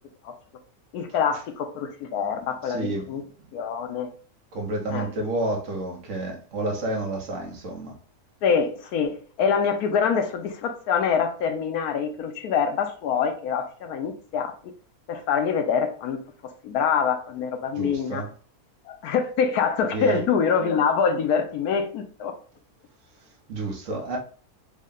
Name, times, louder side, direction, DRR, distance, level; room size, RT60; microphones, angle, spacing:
voice 1, 0.9-3.2 3.5-4.1 4.9-5.1 8.4-14.5 15.1-16.2 16.6-18.2 18.8-22.3, left 6 dB, 80° left, 1.1 m, -25 dB
voice 2, 2.1-3.2 4.5-8.0 17.7-18.3 19.9-20.3 23.1-24.2, right 2 dB, 55° right, 1.1 m, -30 dB
3.5 x 2.2 x 3.7 m
omnidirectional pair, 1.6 m